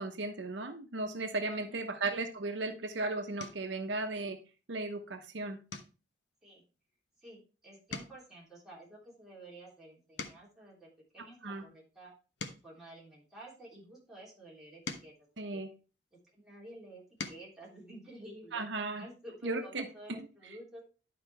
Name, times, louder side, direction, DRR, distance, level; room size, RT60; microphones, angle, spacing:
voice 1, 0.0-4.4 4.7-5.6 11.4-11.6 15.4-15.7 18.5-19.0 19.4-19.9, right 3 dB, 80° right, 6 dB, 0.9 m, -36 dB
sound 1, 2.5-2.8 3.4-3.8 4.3-4.6 4.9-5.1 5.7-7.5 7.8-10.7 11.3-13.8 14.4-16.3 16.8-17.6 18.9-19.0 19.3-19.5, left 4 dB, 75° left, 1.0 m, -48 dB
voice 2, 7.2-12.1 12.6-15.6 16.3-20.8, right 1 dB, 5° right, -6 dB, 3.3 m, -52 dB
11.0 x 5.1 x 3.4 m, 0.34 s
head